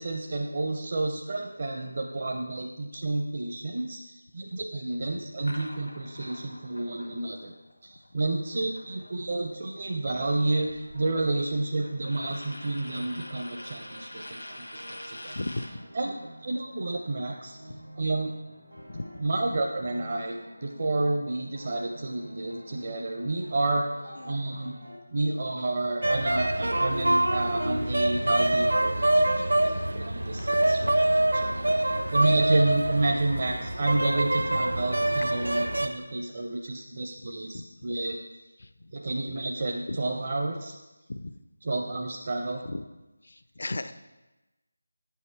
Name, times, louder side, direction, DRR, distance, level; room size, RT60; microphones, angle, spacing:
voice 1, 0.0-7.5 7.8-15.3 15.9-16.1 16.4-17.6 18.0-18.3 19.2-24.7 25.1-31.5 31.8-38.4 38.9-40.8 41.6-42.6, right 2 dB, 40° right, 1 dB, 0.5 m, -30 dB
sound 1, 5.5-9.5 9.8-15.8, left 1 dB, 80° left, 1.2 m, -46 dB
sound 2, 8.9-9.1 10.6-25.0, equal, 90° right, 2.0 m, -49 dB
voice 2, 15.4-15.7 17.7-17.8 18.9-19.0 24.2-24.3 30.4-30.6 32.2-32.3 37.5-37.6 39.9-40.0 41.1-41.3 42.7-42.8 43.3-43.9, left 2 dB, 55° left, 11 dB, 0.4 m, -35 dB
sound 3, 26.0-35.9, right 1 dB, 75° right, 0.7 m, -25 dB
7.8 x 5.5 x 4.5 m, 1.1 s
figure-of-eight pair, 160°, 0 cm